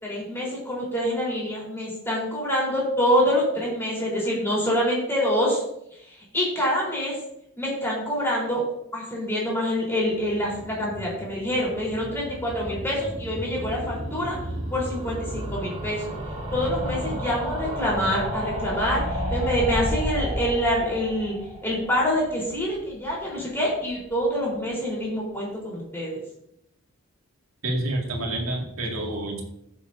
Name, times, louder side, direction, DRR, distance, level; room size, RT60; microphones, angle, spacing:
voice 1, 0.0-5.6 6.1-7.1 7.6-8.6 8.9-14.4 14.7-16.1 16.5-19.0 19.3-21.4 21.6-26.2, equal, 10° left, -5 dB, 3.9 m, -26 dB
sound 1, 10.2-23.1 23.4-23.5 23.7-23.8 24.0-24.1, equal, 25° right, 1.9 m, -32 dB
voice 2, 27.6-29.4, right 1 dB, 80° right, 0 dB, 2.2 m, -28 dB
14.5 x 7.3 x 2.7 m, 0.78 s
head